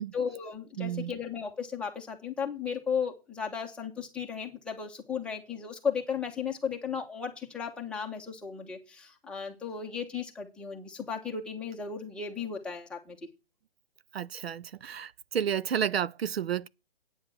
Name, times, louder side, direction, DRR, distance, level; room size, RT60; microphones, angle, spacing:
voice 1, 0.0-13.2, left 6 dB, 5° left, 1.2 m, -35 dB
voice 2, 0.8-1.1 14.1-16.7, right 8 dB, 80° right, 0.7 m, -31 dB
9.0 x 7.9 x 6.5 m
hypercardioid pair, 155°, 30 cm